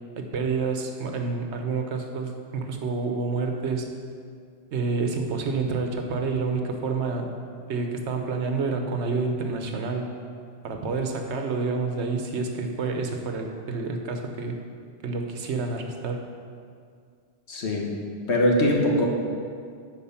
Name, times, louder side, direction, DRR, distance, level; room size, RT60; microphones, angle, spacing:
voice 1, 0.2-3.9 4.7-7.3 7.7-10.1 10.6-14.6 15.0-16.2, right 4 dB, 85° right, 4 dB, 1.1 m, -28 dB
voice 2, 17.5-17.9 18.3-19.1, left 1 dB, 75° left, 0 dB, 1.5 m, -22 dB
10.0 x 4.6 x 5.6 m, 2.2 s
omnidirectional pair, 1.1 m